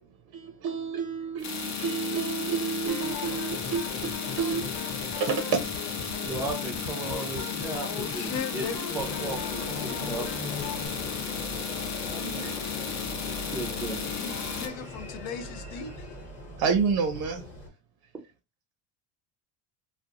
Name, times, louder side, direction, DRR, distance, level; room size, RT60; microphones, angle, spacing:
voice 1, 0.3-4.7 5.2-6.1 12.2-12.5 16.6-17.4, right 6 dB, 55° right, 0.5 m, -30 dB
sound 1, 1.4-14.7, left 6 dB, 40° left, 0.6 m, -34 dB
sound 2, 2.9-10.9, left 3 dB, 55° left, 1.0 m, -40 dB
voice 2, 6.2-10.3 13.5-14.1, right 2 dB, 5° right, 0.4 m, -36 dB
voice 3, 7.8-9.0 14.2-16.2, left 6 dB, 80° left, 0.7 m, -37 dB
sound 3, 9.0-17.7, left 1 dB, 15° left, 1.0 m, -40 dB
2.4 x 2.0 x 2.8 m
cardioid pair, 115°, 44 cm